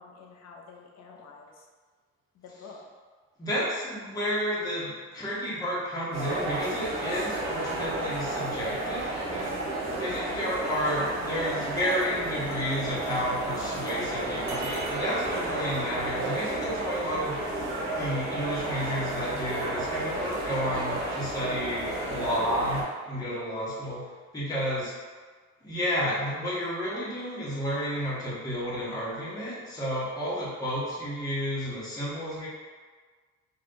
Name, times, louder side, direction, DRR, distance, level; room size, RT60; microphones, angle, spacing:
voice 1, 0.0-1.7 2.3-2.8 10.4-10.8, left 4 dB, 60° left, 1 dB, 0.6 m, -47 dB
voice 2, 3.4-9.5 10.0-17.6 18.0-24.9 25.6-32.5, equal, 10° left, -8 dB, 1.0 m, -31 dB
sound 1, 6.1-22.8, right 2 dB, 60° right, 0.8 m, -32 dB
2.6 x 2.3 x 3.6 m, 1.5 s
cardioid pair, 90°, 30 cm